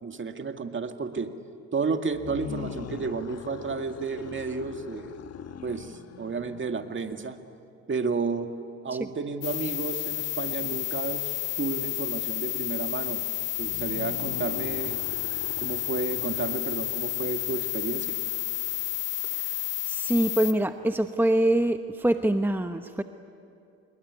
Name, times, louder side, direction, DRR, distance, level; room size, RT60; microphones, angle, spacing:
voice 1, 0.0-1.3 1.7-5.2 5.6-7.4 7.9-8.5 8.8-13.2 13.6-15.0 15.6-18.2, right 4 dB, 35° right, 6 dB, 2.1 m, -32 dB
sound 1, 2.1-7.3 13.5-19.2, left 8 dB, 45° left, 1.4 m, -42 dB
sound 2, 9.4-20.5, left 14 dB, 65° left, 1.6 m, -31 dB
voice 2, 19.9-23.0, right 1 dB, 5° right, 8 dB, 1.0 m, -24 dB
27.0 x 22.0 x 9.7 m, 2.6 s
hypercardioid pair, 65°, 35 cm